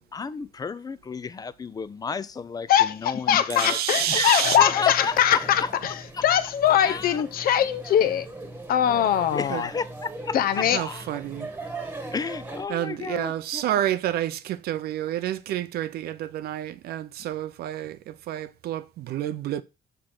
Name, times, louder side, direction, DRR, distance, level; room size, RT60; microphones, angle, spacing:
voice 1, 0.1-3.8 4.1-5.7 6.1-6.2 6.8-7.2 9.3-11.0 12.1-13.6, left 5 dB, 20° left, 0.4 m, -32 dB
voice 2, 2.7-8.3 8.7-9.7 10.3-10.8, left 10 dB, 60° left, 0.7 m, -22 dB
voice 3, 3.5-4.6 9.5-9.6 10.7-11.5 12.7-19.6, right 12 dB, 65° right, 0.6 m, -29 dB
sound 1, 4.4-12.7, right 2 dB, 10° right, 1.4 m, -40 dB
6.8 x 3.7 x 5.8 m
cardioid pair, 110°, 17 cm